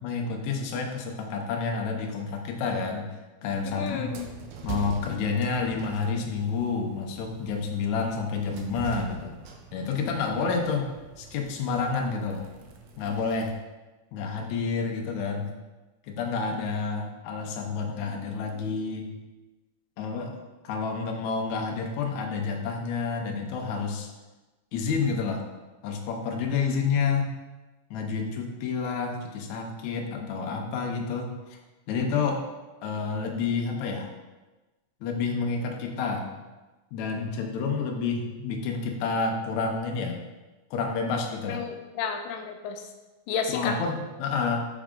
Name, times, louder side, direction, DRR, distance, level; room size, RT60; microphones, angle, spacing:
voice 1, 0.0-3.2 3.4-4.2 4.6-9.4 9.7-10.9 11.2-12.4 13.0-13.5 14.1-15.5 16.1-19.2 20.0-20.4 20.6-24.1 24.7-25.5 25.8-27.3 27.9-31.6 31.9-32.4 32.8-34.1 35.0-36.3 36.9-40.2 40.7-41.6 43.5-44.8, left 5 dB, 75° left, 2 dB, 2.0 m, -29 dB
sound 1, 3.5-13.6, right 6 dB, 75° right, 1.6 m, -43 dB
voice 2, 3.7-4.2 41.5-42.8 43.3-43.8, left 6 dB, 90° left, 5 dB, 2.2 m, -31 dB
6.1 x 4.7 x 3.7 m, 1.1 s
omnidirectional pair, 3.7 m